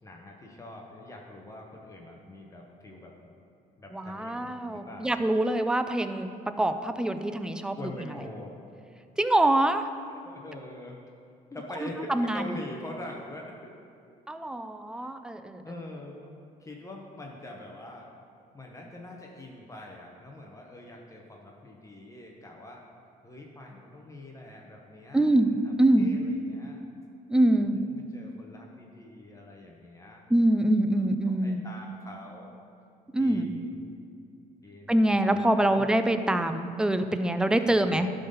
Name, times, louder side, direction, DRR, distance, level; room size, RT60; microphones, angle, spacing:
voice 1, 0.0-3.1 3.8-5.2 7.7-8.7 10.1-11.0 11.5-13.7 14.9-15.1 15.6-18.1 18.5-22.8 23.2-26.8 27.5-30.2 31.0-31.1 31.4-32.5 33.2-33.8 34.6-35.9 37.6-38.1, left 1 dB, 20° left, 0 dB, 0.9 m, -44 dB
voice 2, 3.9-7.8 9.2-9.9 12.1-12.5 14.3-15.6 25.1-25.5 25.8-26.1 27.3-27.8 30.3-31.6 33.1-33.5 34.9-38.1, right 1 dB, 5° right, 9 dB, 0.4 m, -24 dB
11.5 x 4.0 x 5.3 m, 2.4 s
cardioid pair, 110°, 17 cm